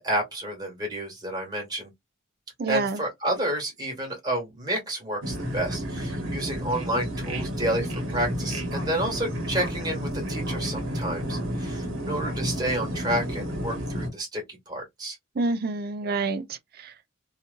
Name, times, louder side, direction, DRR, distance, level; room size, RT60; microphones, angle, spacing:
voice 1, 0.0-1.9 2.7-15.2, right 1 dB, 20° right, 1.5 m, -30 dB
voice 2, 2.6-3.0 15.4-17.1, right 3 dB, 50° right, 0.4 m, -28 dB
sound 1, 5.2-14.1, equal, 80° right, 1.1 m, -31 dB
2.9 x 2.4 x 2.5 m
head